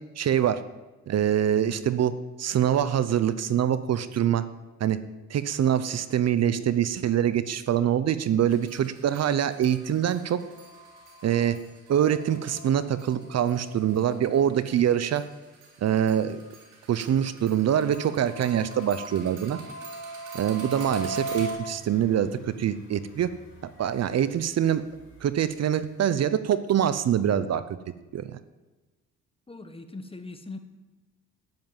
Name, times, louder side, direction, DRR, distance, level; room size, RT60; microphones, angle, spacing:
voice 1, 0.2-0.6 1.1-2.1 2.4-4.4 4.8-5.0 5.3-10.4 11.2-11.6 11.9-15.2 15.8-16.4 16.9-19.6 20.3-23.3 23.8-24.8 25.2-27.6 28.1-28.2, right 10 dB, 55° right, 14 dB, 0.8 m, -24 dB
sound 1, 8.5-14.7 15.1-21.5, right 2 dB, 85° right, 3.5 m, -40 dB
sound 2, 20.5-26.0, right 1 dB, 40° left, 4.7 m, -52 dB
voice 2, 29.5-30.6, left 3 dB, 20° left, 8 dB, 1.5 m, -40 dB
10.5 x 10.5 x 7.3 m, 1.2 s
cardioid pair, 90°, 30 cm